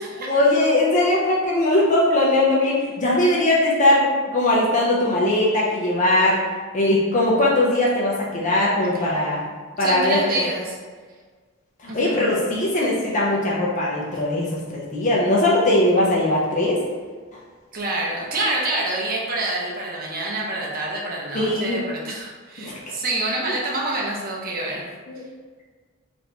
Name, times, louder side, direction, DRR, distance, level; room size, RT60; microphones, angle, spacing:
voice 1, 0.3-6.4 6.7-9.4 9.8-10.2 11.8-16.8 21.3-21.8 22.6-22.7 25.1-25.2, left 1 dB, 35° left, -4 dB, 0.4 m, -20 dB
voice 2, 8.9-9.5 9.8-10.8 11.9-12.3 17.7-24.9, right 2 dB, 45° right, -3 dB, 0.6 m, -27 dB
2.8 x 2.5 x 3.2 m, 1.5 s
head